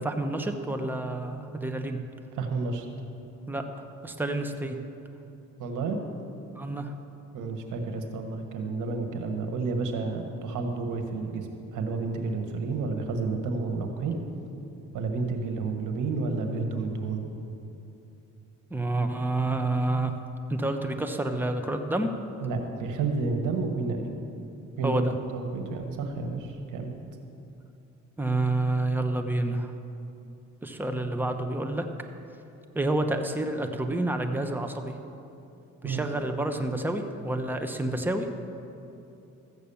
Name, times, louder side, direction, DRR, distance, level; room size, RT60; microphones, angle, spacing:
voice 1, 0.0-2.0 3.5-3.6 4.0-4.8 6.6-6.9 18.7-20.1 20.5-22.1 24.8-25.1 28.2-29.7 30.6-31.8 32.7-35.0 35.8-38.3, right 2 dB, 5° right, 5 dB, 1.0 m, -28 dB
voice 2, 2.4-2.9 5.6-6.0 7.3-14.2 14.9-17.2 22.4-24.0 24.8-25.0 25.3-26.9 35.8-36.2, right 4 dB, 85° right, 4 dB, 1.5 m, -30 dB
14.0 x 8.3 x 7.1 m, 2.8 s
cardioid pair, 90°, 30 cm